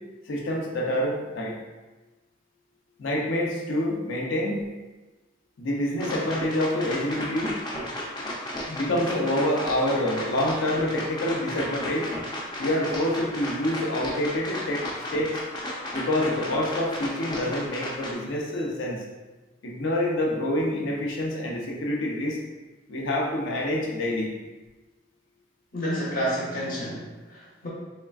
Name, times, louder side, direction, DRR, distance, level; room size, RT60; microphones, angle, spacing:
voice 1, 0.3-1.6 3.0-4.7 5.6-7.5 8.7-12.1 12.6-14.8 15.1-15.4 15.9-19.0 19.6-22.4 22.9-24.3, left 1 dB, 75° left, -2 dB, 0.6 m, -27 dB
sound 1, 6.0-18.1, left 1 dB, 20° left, 0.4 m, -34 dB
voice 2, 25.7-27.7, equal, 45° left, -7 dB, 1.0 m, -30 dB
3.6 x 3.3 x 2.3 m, 1.2 s
head